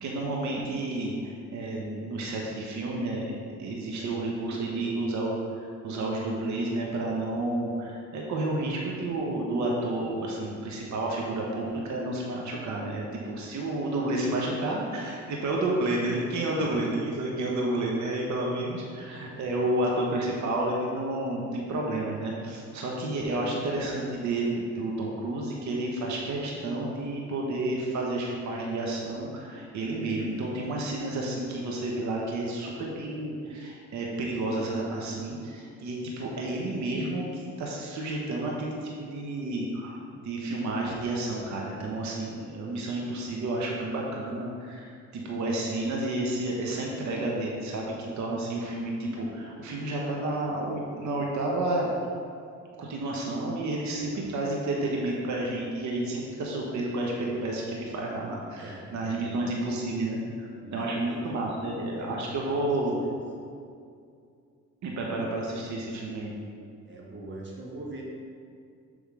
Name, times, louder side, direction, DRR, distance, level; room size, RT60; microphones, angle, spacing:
voice 1, 0.0-5.4 5.8-51.9 52.8-63.0 64.8-66.3, right 2 dB, 70° right, -2 dB, 1.1 m, -31 dB
voice 2, 3.9-5.0 16.4-16.8 19.2-19.4 54.0-54.2 58.6-59.5 60.6-61.2 61.9-62.6 63.0-63.2 66.8-68.0, right 2 dB, 40° right, -2 dB, 1.5 m, -44 dB
7.2 x 3.6 x 4.8 m, 2.3 s
cardioid pair, 90°, 30 cm